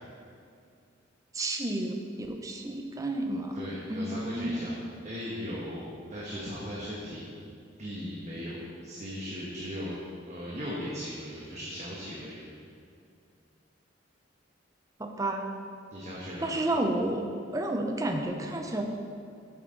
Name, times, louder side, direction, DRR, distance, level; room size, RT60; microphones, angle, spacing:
voice 1, 1.3-3.6 3.9-4.7 15.0-15.5 16.4-18.8, right 1 dB, 20° right, 3 dB, 0.7 m, -31 dB
voice 2, 3.5-4.7 5.0-5.8 6.1-7.2 7.8-8.6 8.8-12.4 15.9-16.6, equal, 35° right, -6 dB, 1.2 m, -38 dB
8.1 x 7.9 x 3.9 m, 2.4 s
head